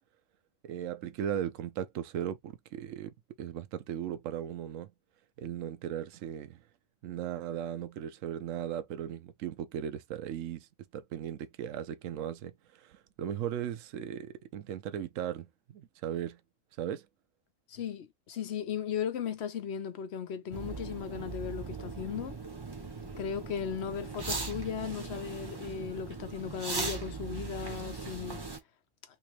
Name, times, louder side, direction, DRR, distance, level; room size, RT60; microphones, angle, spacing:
voice 1, 0.6-4.9 5.4-6.6 7.0-10.7 10.9-16.4 16.8-17.1, right 10 dB, 75° right, 1.0 m, -37 dB
voice 2, 17.7-22.4 23.2-28.4, left 8 dB, 60° left, 1.0 m, -36 dB
sound 1, 20.5-28.6, right 3 dB, 25° right, 0.7 m, -39 dB
3.2 x 3.0 x 3.0 m
omnidirectional pair, 1.3 m